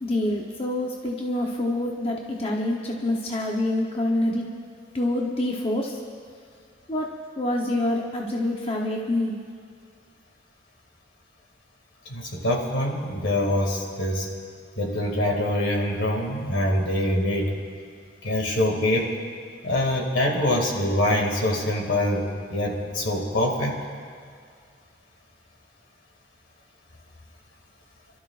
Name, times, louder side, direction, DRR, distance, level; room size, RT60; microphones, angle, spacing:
voice 1, 0.0-4.5 4.9-6.0 6.9-9.4, left 1 dB, 30° left, -1 dB, 0.8 m, -26 dB
voice 2, 12.1-14.3 14.8-17.5 18.2-19.1 19.6-22.2 22.5-23.8, left 1 dB, 80° left, 0 dB, 2.3 m, -24 dB
30.0 x 12.5 x 2.5 m, 2.1 s
head